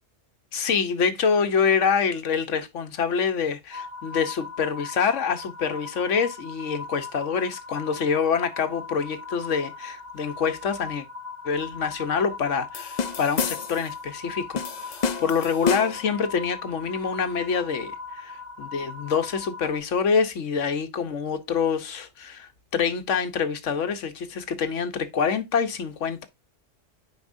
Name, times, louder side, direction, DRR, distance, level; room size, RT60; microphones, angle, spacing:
voice 1, 0.5-11.0 11.4-17.9 18.6-26.2, left 6 dB, 75° left, 1.3 m, -26 dB
sound 1, 3.7-19.8, left 4 dB, 20° right, 2.5 m, -39 dB
sound 2, 12.7-13.9 14.6-16.1, left 6 dB, 45° left, 0.6 m, -29 dB
9.6 x 4.7 x 2.6 m
omnidirectional pair, 1.3 m